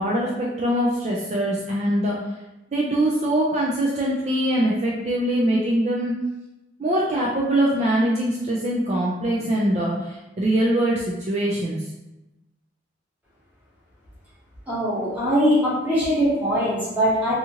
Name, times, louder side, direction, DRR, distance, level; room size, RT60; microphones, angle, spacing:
voice 1, 0.0-2.2 2.7-6.1 6.8-11.8, right 1 dB, 35° right, -4 dB, 0.3 m, -23 dB
voice 2, 14.7-17.3, equal, 10° right, -9 dB, 1.0 m, -21 dB
2.7 x 2.4 x 2.8 m, 0.99 s
head